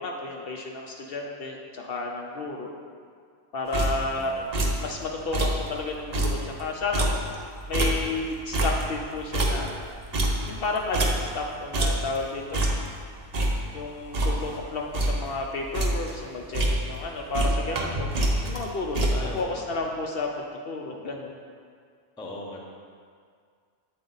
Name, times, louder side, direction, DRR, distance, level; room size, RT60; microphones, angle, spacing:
voice 1, 0.0-2.7 3.5-4.5 4.8-7.1 7.7-9.8 10.5-12.6 13.7-18.1 18.4-21.4, left 3 dB, 60° left, 1 dB, 0.7 m, -32 dB
sound 1, 3.7-4.2 4.5-4.9 5.2-5.7 6.0-8.3 8.5-11.5 11.7-12.2 12.5-13.0 13.3-14.6 14.9-15.3 15.6-16.2 16.5-17.1 17.3-19.4, right 1 dB, 40° right, 0.6 m, -26 dB
voice 2, 4.2-4.5 19.1-19.7 22.2-22.6, left 2 dB, 5° left, -2 dB, 0.4 m, -39 dB
8.1 x 4.2 x 3.9 m, 2.1 s
omnidirectional pair, 1.2 m